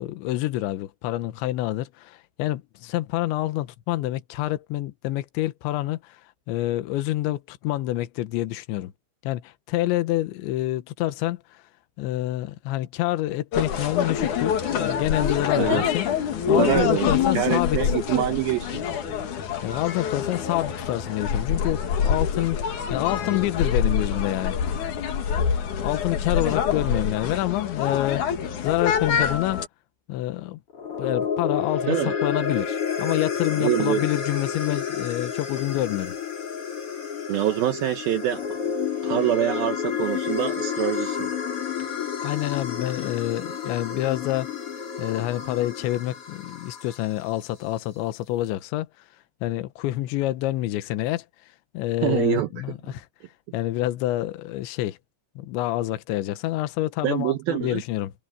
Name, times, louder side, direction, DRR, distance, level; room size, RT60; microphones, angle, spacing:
voice 1, 0.0-6.2 6.5-8.9 9.2-11.6 12.0-17.8 19.2-24.6 25.8-28.3 28.6-29.6 30.1-30.6 31.0-36.1 42.2-44.5 45.0-48.9 49.4-51.2 51.7-53.1 53.5-55.0 55.4-58.1, left 15 dB, 75° left, 3.4 m, -27 dB
sound 1, 13.5-29.7, left 7 dB, 50° left, 2.7 m, -26 dB
voice 2, 15.5-15.9 16.5-18.8 31.9-32.1 33.5-34.1 37.3-38.6 39.0-41.3 52.0-52.5 57.0-57.8, right 13 dB, 85° right, 2.1 m, -25 dB
sound 2, 30.7-47.2, left 7 dB, 35° left, 3.4 m, -30 dB
omnidirectional pair, 5.4 m